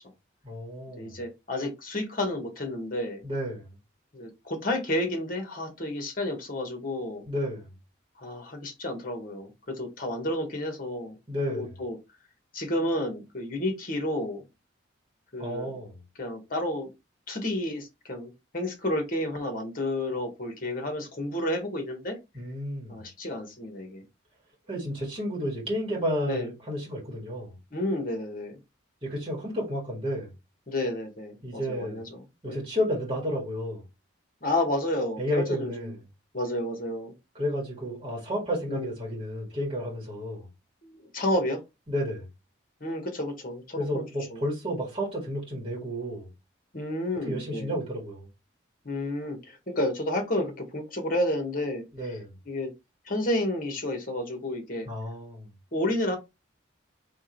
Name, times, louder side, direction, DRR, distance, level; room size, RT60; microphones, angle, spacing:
voice 1, 0.4-1.2 3.2-3.7 7.3-7.7 11.3-11.7 15.4-16.0 22.3-23.1 24.7-27.6 29.0-30.3 31.4-32.1 32.4-33.8 35.2-36.0 37.4-40.5 41.9-42.2 43.8-46.3 47.3-48.3 51.9-52.4 54.8-55.5, equal, 25° right, 1.9 m, -31 dB
voice 2, 1.0-3.2 4.1-7.2 8.2-11.2 11.5-12.0 12.5-14.4 15.3-15.7 16.2-16.9 17.3-22.2 22.9-24.0 26.2-26.5 27.7-28.6 30.7-32.7 34.4-35.9 36.3-37.1 38.7-38.9 40.8-41.6 42.8-44.0 44.3-44.4 46.7-47.7 48.8-52.2 52.4-52.7 53.0-54.9 55.7-56.2, left 1 dB, 45° left, 1.2 m, -31 dB
3.5 x 2.9 x 4.4 m
head